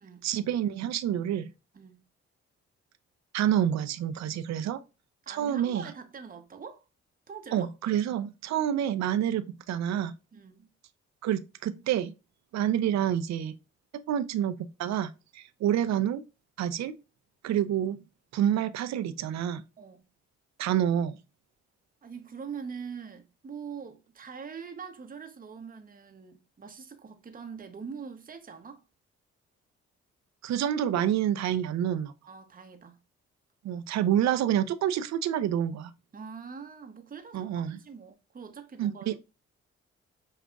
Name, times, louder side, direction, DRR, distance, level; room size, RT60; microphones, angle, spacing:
voice 1, 0.2-1.5 3.3-4.8 5.3-5.9 7.5-10.1 11.2-12.1 12.5-13.6 14.1-16.2 16.6-16.9 17.4-18.0 18.3-19.6 20.6-21.1 30.4-32.1 33.6-35.9 37.3-37.8 38.8-39.2, right 10 dB, 65° right, 0.5 m, -28 dB
voice 2, 5.2-6.8 7.3-7.7 10.3-10.7 19.8-20.0 22.0-28.8 32.3-33.0 36.1-39.2, right 6 dB, 30° right, 0.7 m, -43 dB
5.3 x 2.4 x 2.3 m
supercardioid pair, 50°, 30 cm